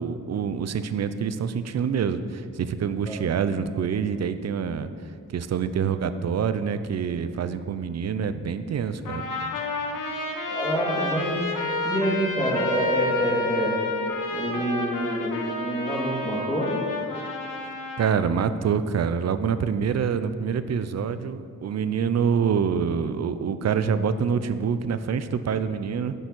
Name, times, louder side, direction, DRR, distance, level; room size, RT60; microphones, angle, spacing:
voice 1, 0.0-4.9 5.3-9.3 18.0-26.1, right 6 dB, 55° right, 12 dB, 0.5 m, -26 dB
Trumpet, 9.0-18.1, left 2 dB, 75° left, 1.1 m, -30 dB
voice 2, 10.5-11.4 11.8-13.8 14.3-16.7, equal, 20° left, -4 dB, 2.1 m, -26 dB
7.9 x 7.1 x 6.1 m, 2.2 s
wide cardioid pair, 155°, 32 cm